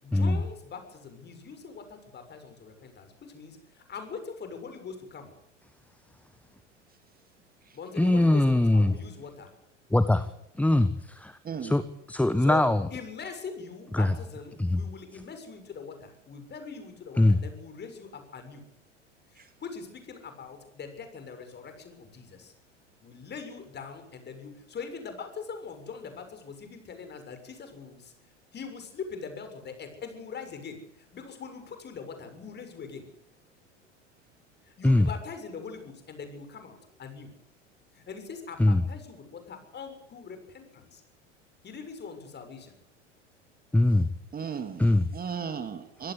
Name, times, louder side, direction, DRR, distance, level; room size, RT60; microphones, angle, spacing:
voice 1, 0.0-5.3 7.7-9.5 12.4-18.7 19.3-22.5 23.0-28.1 28.5-33.1 34.6-37.3 37.9-41.0 41.6-42.8, left 5 dB, 30° left, 7.0 m, -42 dB
voice 2, 8.0-8.9 9.9-10.3 10.5-12.9 13.9-14.1 14.6-14.8 17.2-17.4 34.8-35.1 38.6-38.8 43.7-44.1 44.8-45.1, left 1 dB, 5° left, 1.2 m, -22 dB
voice 3, 11.4-11.8 19.4-19.5 44.3-44.8 45.1-46.1, right 6 dB, 25° right, 2.6 m, -36 dB
26.0 x 17.5 x 8.4 m
figure-of-eight pair, 80°, 37 cm